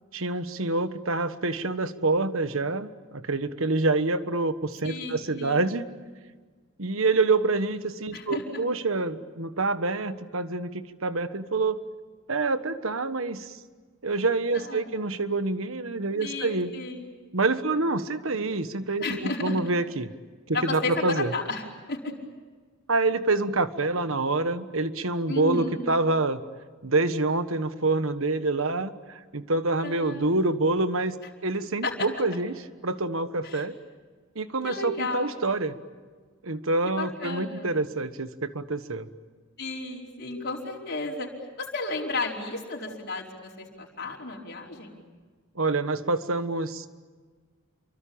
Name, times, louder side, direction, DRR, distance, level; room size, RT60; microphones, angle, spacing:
voice 1, 0.1-5.9 6.8-11.8 12.3-13.6 14.0-16.7 17.3-20.1 20.5-21.3 22.9-26.4 26.8-31.1 31.4-33.7 34.3-35.7 36.4-39.1 45.5-46.9, right 3 dB, 70° right, 11 dB, 1.4 m, -27 dB
voice 2, 4.8-5.6 8.1-8.6 14.5-14.9 16.2-17.1 19.0-19.6 20.5-22.1 25.3-25.8 29.8-30.3 31.8-32.1 33.4-33.6 34.6-35.4 37.0-37.7 39.6-41.3 41.6-45.0, left 3 dB, 50° left, -3 dB, 4.9 m, -33 dB
28.5 x 24.0 x 8.8 m, 1.5 s
head